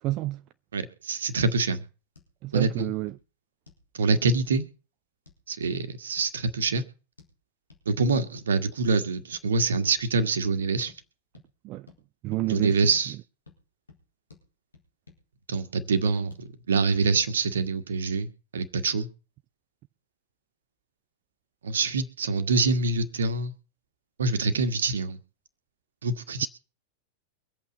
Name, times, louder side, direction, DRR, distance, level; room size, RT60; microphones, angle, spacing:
voice 1, 0.0-0.4 2.4-3.2 11.6-11.9 12.2-12.8, right 18 dB, 40° right, 0.6 m, -29 dB
voice 2, 0.7-1.8 2.5-2.9 3.9-4.7 5.5-6.8 7.9-10.9 12.5-13.1 15.5-19.1 21.6-23.5 24.2-25.2 26.0-26.5, right 4 dB, 65° right, 1.7 m, -25 dB
sound 1, 2.1-2.3 2.6-2.7 3.1-3.2 3.7-3.9 4.4-4.6 5.3-5.8 6.2-6.3 7.2-7.3 7.7-7.8 8.3-8.5 8.8-9.0 9.3-9.5 9.8-10.0 10.4-10.5 10.9-11.0 11.3-11.5 11.9-12.0 12.3-12.5 12.9-13.1 13.5-13.6 13.9-14.0 14.3-14.4 14.7-15.2 15.5-15.6 16.0-16.5 17.1-17.3 17.6-17.7, left 4 dB, 75° left, 4.3 m, -53 dB
24.0 x 8.6 x 4.1 m
figure-of-eight pair, 90°, 0 cm